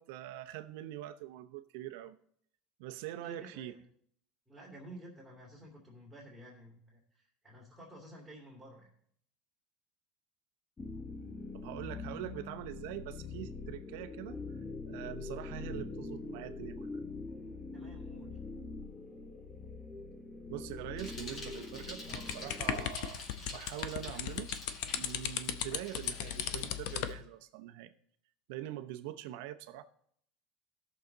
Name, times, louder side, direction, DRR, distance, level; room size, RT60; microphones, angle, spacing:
voice 1, 0.0-2.2 2.8-3.7 11.5-14.4 14.9-17.0 20.5-24.5 24.9-27.9 28.5-29.8, right 13 dB, 75° right, 9 dB, 0.8 m, -43 dB
voice 2, 3.2-3.8 4.5-8.9 17.7-18.4, right 1 dB, 5° right, -4 dB, 2.7 m, -52 dB
sound 1, 10.8-22.9, left 3 dB, 15° left, 1.0 m, -44 dB
Bicycle, 21.0-27.1, left 1 dB, 35° left, 3.0 m, -49 dB
sound 2, 22.1-27.2, left 10 dB, 65° left, 0.8 m, -36 dB
16.0 x 6.6 x 4.0 m, 0.64 s
cardioid pair, 150°, 0 cm